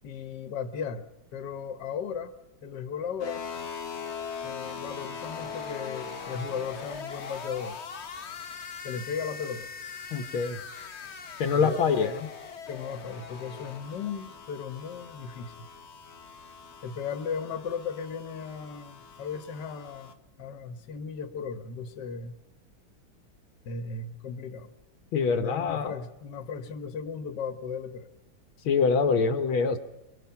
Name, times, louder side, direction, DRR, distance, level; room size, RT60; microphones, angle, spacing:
voice 1, 0.0-1.0 1.3-2.3 2.6-3.4 4.4-7.8 8.8-9.7 11.5-12.1 12.7-15.5 16.8-22.4 23.6-24.7 25.3-28.1, left 6 dB, 60° left, 9 dB, 1.8 m, -36 dB
sound 1, 3.2-20.1, left 6 dB, 40° left, 1.1 m, -41 dB
voice 2, 10.1-10.6 11.4-12.3 25.1-25.9 28.6-29.8, left 5 dB, 85° left, 8 dB, 2.0 m, -25 dB
24.0 x 22.5 x 5.9 m, 1.0 s
omnidirectional pair, 2.2 m